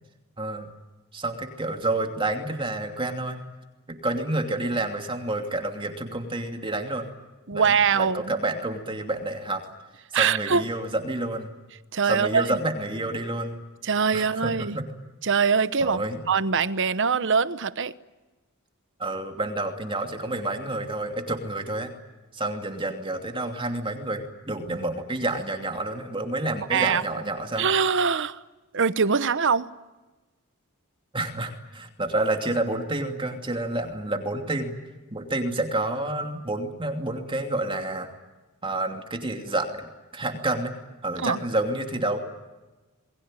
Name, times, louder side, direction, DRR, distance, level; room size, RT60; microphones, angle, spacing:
voice 1, 0.4-0.7 1.1-3.4 3.9-7.1 7.5-9.7 10.1-11.5 12.0-13.6 14.1-14.9 15.8-16.2 19.0-21.9 22.3-27.7 31.1-34.7 35.1-38.1 38.6-40.7 41.0-42.2, right 2 dB, 25° right, 2.8 m, -29 dB
voice 2, 7.5-8.3 10.1-10.6 11.9-12.6 13.8-14.8 15.2-17.9 26.7-27.0 27.6-28.4 28.7-29.7 41.2-41.4, right 6 dB, 55° right, 1.0 m, -23 dB
28.5 x 22.0 x 9.1 m
head